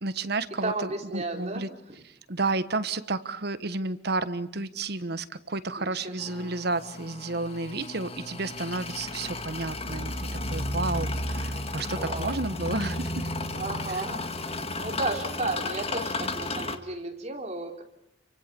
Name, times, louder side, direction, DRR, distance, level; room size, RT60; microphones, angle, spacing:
voice 1, 0.0-1.7 2.0-13.3 13.9-14.0, right 3 dB, 60° right, 13 dB, 1.3 m, -31 dB
voice 2, 0.6-1.8 5.8-6.5 12.0-12.3 13.5-14.3 14.8-17.8, right 2 dB, 35° right, 3 dB, 3.9 m, -33 dB
sound 1, 6.2-16.8, left 2 dB, 35° left, 1.8 m, -33 dB
29.5 x 24.5 x 7.0 m, 0.74 s
head